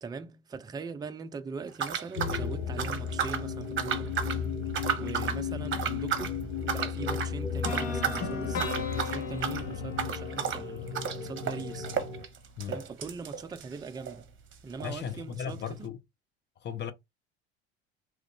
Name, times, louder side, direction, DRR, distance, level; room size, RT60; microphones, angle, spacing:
voice 1, 0.0-4.4 5.0-6.3 6.7-11.9 12.6-14.3 14.6-15.9, right 4 dB, 10° right, 0.4 m, -41 dB
sound 1, 1.7-3.5 3.8-4.4 4.7-5.4 5.7-6.3 6.7-7.3 7.6-8.3 8.5-14.2 14.5-14.6 14.8-14.9 15.6-15.7, right 7 dB, 35° right, 0.9 m, -33 dB
sound 2, 2.1-12.3, left 6 dB, 90° left, 0.9 m, -35 dB
sound 3, 7.6-11.6, left 4 dB, 65° left, 1.2 m, -38 dB
voice 2, 14.8-16.0 16.6-16.9, left 7 dB, 35° left, 0.6 m, -36 dB
3.0 x 2.4 x 3.4 m
hypercardioid pair, 70°, 33 cm